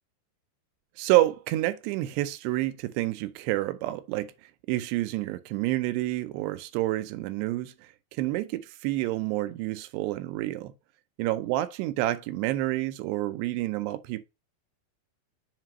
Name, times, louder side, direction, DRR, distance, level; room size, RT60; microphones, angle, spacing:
voice 1, 1.0-4.3 4.7-7.7 8.1-10.7 11.2-14.2, right 16 dB, 90° right, 2.8 m, -28 dB
7.4 x 2.8 x 5.8 m
omnidirectional pair, 4.8 m